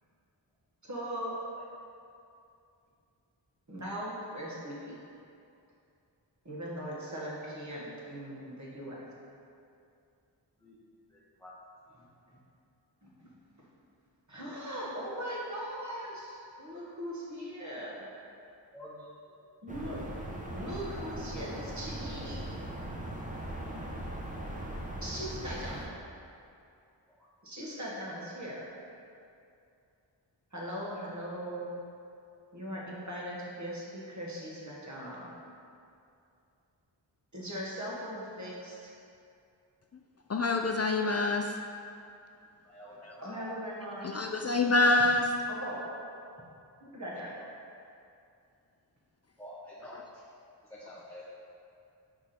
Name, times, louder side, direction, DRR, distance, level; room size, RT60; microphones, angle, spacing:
voice 1, 0.8-1.3 3.7-5.0 6.4-9.0 11.9-12.1 13.0-13.3 14.3-18.0 19.6-20.0 20.5-22.4 25.0-25.9 27.4-28.7 30.5-31.8 32.5-35.3 37.3-38.9 43.2-44.1 45.5-45.9 46.8-47.5, equal, 40° right, -5 dB, 1.6 m, -39 dB
sound 1, 19.7-25.9, right 1 dB, 20° right, 0.8 m, -39 dB
voice 2, 40.3-41.5 43.0-43.1 44.0-45.3 49.9-50.0, left 2 dB, 35° left, 3 dB, 0.4 m, -26 dB
voice 3, 42.6-43.5 49.4-49.9 50.8-51.2, left 1 dB, 5° left, -8 dB, 1.0 m, -47 dB
5.9 x 4.8 x 4.3 m, 2.5 s
wide cardioid pair, 60°, 44 cm